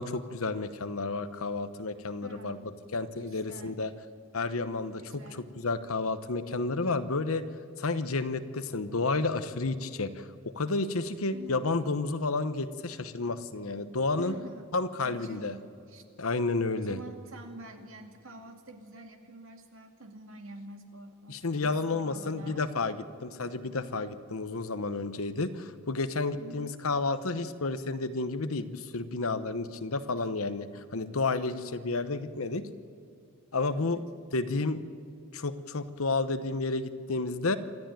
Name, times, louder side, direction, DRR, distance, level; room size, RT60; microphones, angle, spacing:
voice 1, 0.0-2.6 2.9-3.9 4.3-7.4 7.8-14.4 14.7-15.6 16.2-17.0 21.3-32.7 33.5-34.0 34.3-34.8 35.3-37.6, left 3 dB, 75° left, 12 dB, 1.0 m, -31 dB
voice 2, 2.2-2.7 3.2-3.8 5.0-5.5 11.3-11.6 14.2-14.7 15.0-16.0 16.8-22.7 26.4-26.8 33.7-34.1, right 2 dB, 65° right, 4 dB, 2.3 m, -47 dB
27.5 x 13.0 x 9.1 m, 2.6 s
head